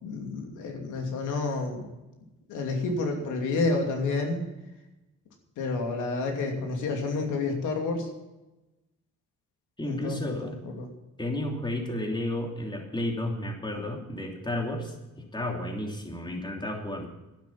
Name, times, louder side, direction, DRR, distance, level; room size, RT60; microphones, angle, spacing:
voice 1, 0.0-1.9 2.5-4.5 5.6-8.1 9.8-10.9, left 3 dB, 90° left, 2 dB, 2.8 m, -29 dB
voice 2, 9.8-10.5 11.2-17.1, left 1 dB, 15° left, 1 dB, 3.0 m, -32 dB
11.5 x 10.5 x 7.2 m, 1.0 s
cardioid pair, 90°, 30 cm